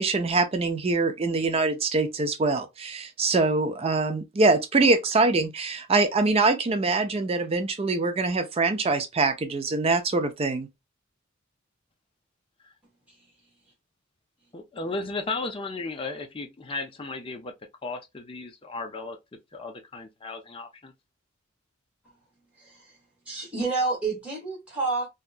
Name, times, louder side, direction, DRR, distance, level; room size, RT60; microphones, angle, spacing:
voice 1, 0.0-10.7, right 3 dB, 30° right, 0.4 m, -24 dB
voice 2, 14.5-17.5 17.8-20.9, left 3 dB, 25° left, 0.5 m, -35 dB
voice 3, 22.6-23.0 23.2-25.1, right 3 dB, 5° right, 1.4 m, -29 dB
2.8 x 2.3 x 2.3 m
head